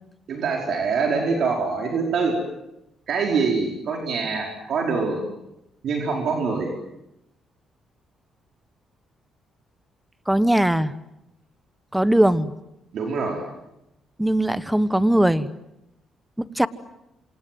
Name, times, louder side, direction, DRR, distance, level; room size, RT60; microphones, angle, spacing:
voice 1, 0.3-2.4 3.1-5.3 5.8-6.7 12.9-13.4, right 4 dB, 65° right, 1 dB, 4.9 m, -24 dB
voice 2, 10.3-10.9 11.9-12.5 14.2-15.5 16.4-16.7, right 1 dB, 5° right, 15 dB, 1.2 m, -20 dB
27.5 x 27.0 x 7.7 m, 0.87 s
cardioid pair, 90°, 0 cm